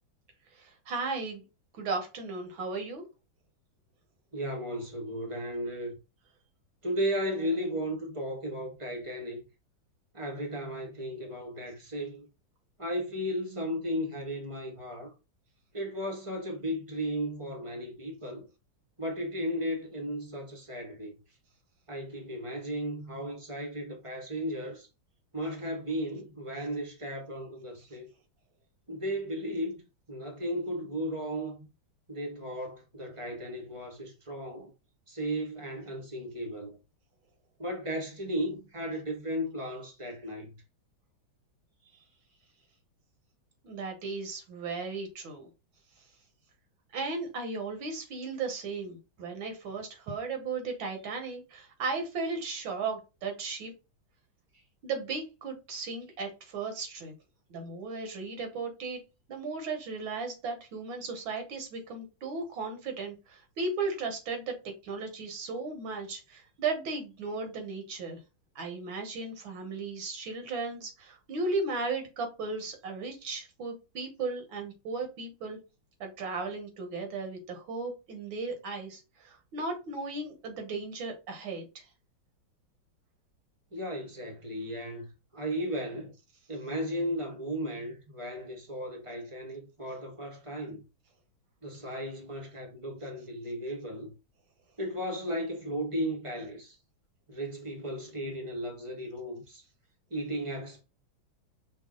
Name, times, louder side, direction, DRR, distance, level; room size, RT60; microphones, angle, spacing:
voice 1, 0.6-1.4 1.8-3.1 43.6-45.5 46.9-53.7 54.8-57.1 57.5-59.0 59.3-68.2 68.6-75.6 76.0-81.8, right 3 dB, 75° right, 1.8 m, -36 dB
voice 2, 4.3-5.9 6.8-9.4 10.1-12.3 12.8-15.1 15.7-18.4 19.0-21.2 21.9-24.9 25.3-28.1 28.9-29.8 30.1-31.7 32.1-34.7 35.1-36.8 37.6-40.5 83.7-85.1 85.3-86.1 86.5-90.8 91.6-94.1 94.8-96.8 97.3-99.6 100.1-100.8, equal, 25° right, 0.7 m, -35 dB
5.3 x 2.3 x 3.7 m
omnidirectional pair, 2.2 m